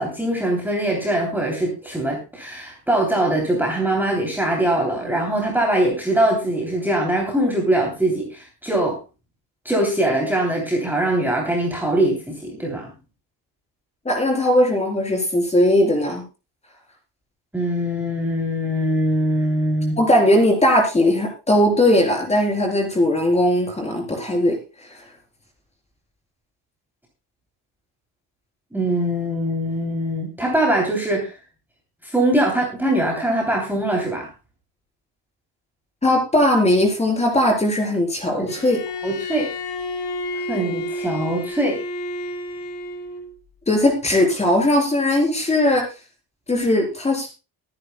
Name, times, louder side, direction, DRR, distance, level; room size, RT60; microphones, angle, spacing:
voice 1, 0.0-9.0 9.6-12.9 17.5-20.0 28.7-31.3 32.0-34.3 38.3-38.5 39.0-39.5 40.3-41.8, right 1 dB, 5° right, -1 dB, 3.1 m, -22 dB
voice 2, 14.0-16.2 20.0-24.6 36.0-38.8 43.7-45.9 46.5-47.3, left 1 dB, 15° left, 2 dB, 4.0 m, -19 dB
Bowed string instrument, 38.5-43.3, left 1 dB, 75° left, 2.8 m, -30 dB
23.0 x 9.9 x 2.3 m, 0.29 s
cardioid pair, 165°, 42 cm